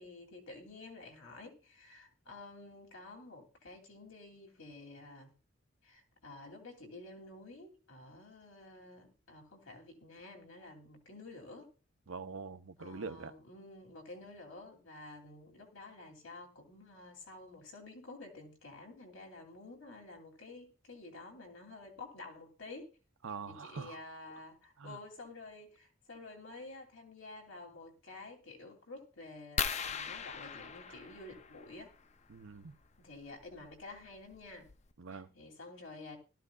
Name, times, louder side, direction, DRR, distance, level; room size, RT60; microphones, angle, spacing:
voice 1, 0.0-5.3 5.8-11.7 12.8-23.0 23.5-31.9 33.0-34.7 35.1-36.2, left 2 dB, 80° left, 2.8 m, -50 dB
voice 2, 12.1-13.3 23.2-24.0 24.8-25.0 30.9-31.0 32.3-32.7 35.0-35.3, right 4 dB, 80° right, 0.7 m, -44 dB
sound 1, 29.6-31.9 33.6-33.7 34.3-34.4 34.7-34.9, left 6 dB, 35° left, 0.5 m, -38 dB
17.0 x 13.0 x 2.3 m
head